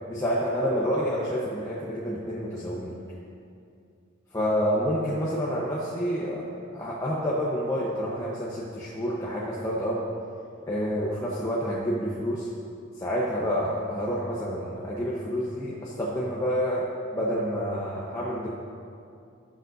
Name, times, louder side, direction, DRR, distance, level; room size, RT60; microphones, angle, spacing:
voice 1, 0.1-2.9 4.3-6.4 6.7-10.0 10.7-12.5 13.0-16.8 17.1-18.5, equal, 15° left, -7 dB, 1.0 m, -28 dB
18.5 x 7.3 x 2.7 m, 2.5 s
head